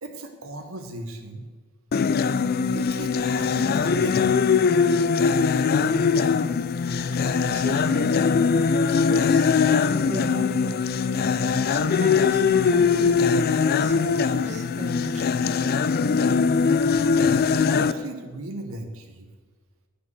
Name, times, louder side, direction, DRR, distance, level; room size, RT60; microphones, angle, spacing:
voice 1, 0.0-1.4 2.7-4.3 17.1-19.3, right 2 dB, 65° right, 4 dB, 1.0 m, -37 dB
sound 1, 1.9-17.9, left 5 dB, 45° left, 0.4 m, -21 dB
voice 2, 7.1-8.1 9.0-9.5 10.0-10.9 11.7-15.5, equal, 30° right, 6 dB, 1.1 m, -37 dB
10.0 x 5.6 x 7.9 m, 1.4 s
head